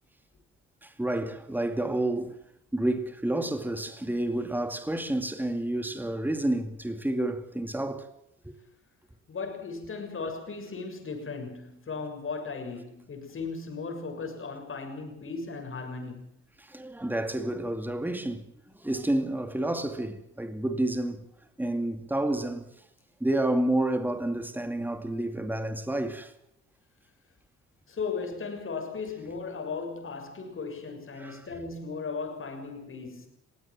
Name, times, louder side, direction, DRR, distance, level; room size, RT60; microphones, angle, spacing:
voice 1, 0.8-2.4 2.7-8.1 8.4-8.5 16.6-21.3 21.6-22.7 23.2-26.3 31.2-31.5, right 1 dB, 5° right, 2.4 m, -30 dB
voice 2, 9.3-16.3 27.9-33.3, left 4 dB, 45° left, 6.8 m, -36 dB
21.5 x 16.5 x 7.5 m
cardioid pair, 90°, 30 cm